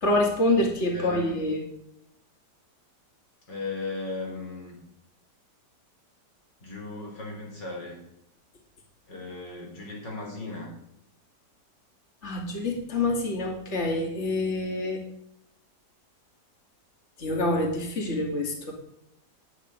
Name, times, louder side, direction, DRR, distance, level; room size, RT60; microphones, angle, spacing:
voice 1, 0.0-1.6 12.2-15.0 17.2-18.7, left 2 dB, 40° left, 0 dB, 2.6 m, -26 dB
voice 2, 0.9-1.4 3.5-4.8 6.6-8.0 9.1-10.7, left 3 dB, 85° left, 0 dB, 4.4 m, -36 dB
11.5 x 7.7 x 9.5 m, 0.79 s
omnidirectional pair, 1.9 m